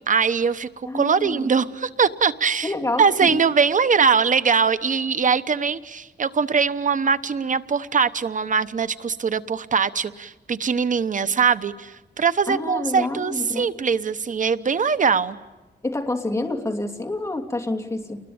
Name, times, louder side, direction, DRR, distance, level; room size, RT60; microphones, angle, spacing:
voice 1, 0.1-0.7 0.9-2.7 3.0-15.4, right 6 dB, 50° right, 13 dB, 0.9 m, -21 dB
voice 2, 0.8-1.5 2.6-3.4 12.5-13.7 15.8-18.2, left 2 dB, 15° left, 4 dB, 2.9 m, -28 dB
29.5 x 21.0 x 8.8 m, 1.2 s
wide cardioid pair, 120°, 17 cm